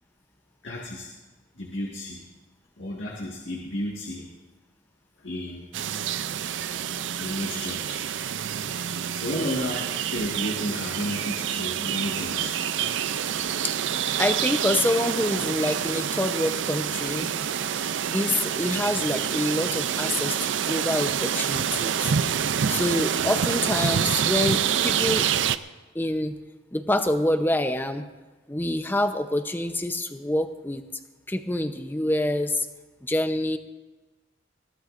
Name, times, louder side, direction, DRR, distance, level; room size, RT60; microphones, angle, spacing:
voice 1, 0.6-1.1 1.6-2.2 2.8-4.2 5.2-5.6 7.2-8.1 9.1-12.6, left 1 dB, 85° left, -2 dB, 1.8 m, -32 dB
sound 1, 5.7-25.6, right 8 dB, 85° right, 0.5 m, -27 dB
voice 2, 14.2-17.3 18.0-22.1 22.7-25.3 25.9-26.4 26.7-28.1 28.5-30.8 31.3-32.7 33.1-33.6, left 1 dB, 10° left, 8 dB, 0.8 m, -26 dB
21.5 x 16.0 x 2.6 m, 1.2 s
head